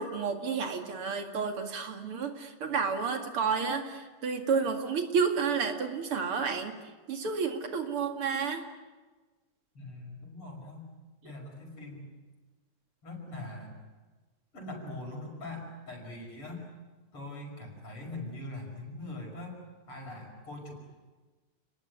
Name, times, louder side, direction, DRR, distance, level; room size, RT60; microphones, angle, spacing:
voice 1, 0.0-6.7 7.1-8.6, right 5 dB, 80° right, 5 dB, 3.2 m, -30 dB
voice 2, 9.7-10.9 11.2-12.1 13.0-13.8 14.5-16.6 17.1-19.6 19.9-20.7, left 2 dB, 90° left, 2 dB, 6.7 m, -42 dB
29.5 x 19.5 x 9.5 m, 1.3 s
omnidirectional pair, 2.4 m